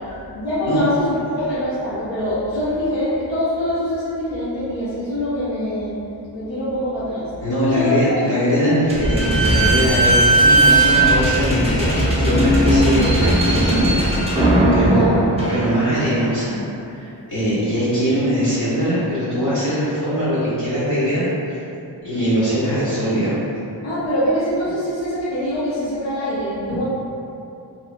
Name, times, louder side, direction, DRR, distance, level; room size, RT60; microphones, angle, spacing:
voice 1, 0.3-5.9 6.3-7.3 7.7-8.2 8.6-8.8 12.5-12.9 14.8-15.2 23.8-26.8, left 1 dB, 80° left, -11 dB, 0.7 m, -24 dB
voice 2, 7.4-13.9 14.7-15.1 15.5-21.5 22.0-23.4 26.7-26.8, equal, 60° left, -15 dB, 1.3 m, -21 dB
Slam / Squeak, 8.9-16.2, right 1 dB, 15° right, 0.6 m, -17 dB
2.8 x 2.6 x 2.5 m, 2.7 s
wide cardioid pair, 60°, 44 cm